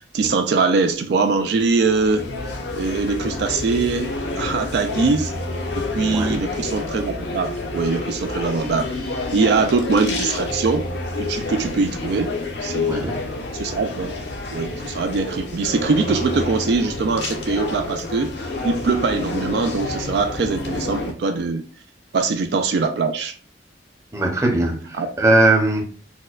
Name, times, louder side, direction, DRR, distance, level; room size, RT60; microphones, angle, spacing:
voice 1, 0.1-2.3 2.7-5.3 5.8-8.9 9.3-10.8 11.2-12.3 12.6-13.1 13.5-14.1 14.5-18.4 18.6-21.6 22.1-23.4 24.9-25.1, right 4 dB, 65° right, 0.3 m, -22 dB
sound 1, 1.4-21.1, left 2 dB, 65° left, 0.6 m, -29 dB
voice 2, 12.9-13.2 24.1-24.9 25.2-25.8, right 2 dB, 15° right, 0.6 m, -19 dB
4.2 x 2.2 x 2.3 m
head